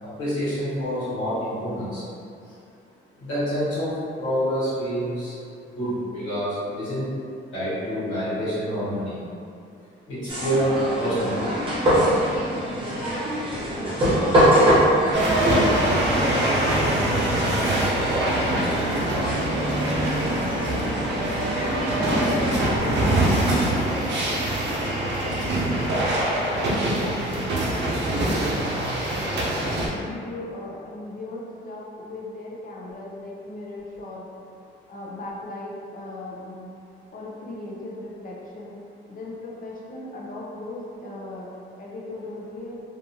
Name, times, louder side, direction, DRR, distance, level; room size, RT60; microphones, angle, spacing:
voice 1, 0.0-2.0 3.2-3.9 4.2-5.4 5.8-7.0 7.5-9.1 10.1-11.5, equal, 75° left, -13 dB, 1.2 m, -27 dB
sound 1, 10.3-22.9, equal, 25° right, 1.0 m, -24 dB
sound 2, 15.1-29.9, right 1 dB, 60° right, 0.6 m, -24 dB
voice 2, 15.8-21.4 22.1-26.6 26.9-28.5 29.0-34.2 34.9-36.7 37.1-38.8 39.1-41.5 41.8-42.8, left 1 dB, 45° left, -3 dB, 0.6 m, -38 dB
2.6 x 2.4 x 2.7 m, 2.4 s
cardioid pair, 90°, 20 cm